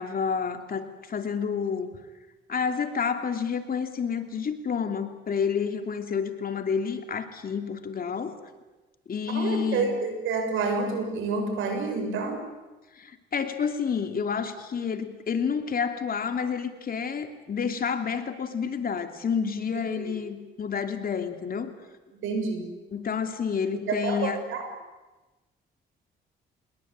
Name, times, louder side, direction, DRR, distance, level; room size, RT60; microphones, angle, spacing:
voice 1, 0.0-1.9 2.5-8.4 9.1-9.9 12.9-21.7 22.9-24.4, left 6 dB, 45° left, 7 dB, 2.9 m, -29 dB
voice 2, 9.3-12.4 20.0-20.1 22.2-22.7 23.7-24.7, right 4 dB, 80° right, 5 dB, 6.8 m, -29 dB
26.5 x 21.0 x 8.8 m, 1.2 s
cardioid pair, 90°, 20 cm